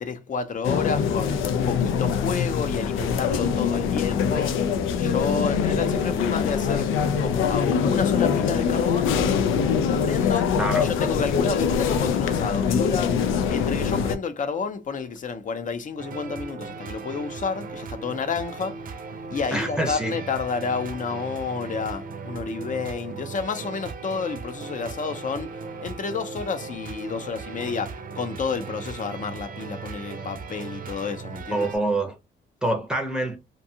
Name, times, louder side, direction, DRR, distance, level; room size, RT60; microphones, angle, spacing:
voice 1, 0.0-1.4 1.7-4.6 5.0-6.9 7.2-9.1 9.8-18.8 19.3-31.7, left 5 dB, 40° left, 0.6 m, -30 dB
sound 1, 0.6-14.2, left 7 dB, 85° left, 0.4 m, -23 dB
voice 2, 10.6-10.9 19.5-20.1 31.5-32.1 32.6-33.4, right 1 dB, 5° right, 0.7 m, -26 dB
sound 2, 16.0-31.8, right 5 dB, 45° right, 0.5 m, -37 dB
2.6 x 2.3 x 2.7 m
cardioid pair, 90°, 20 cm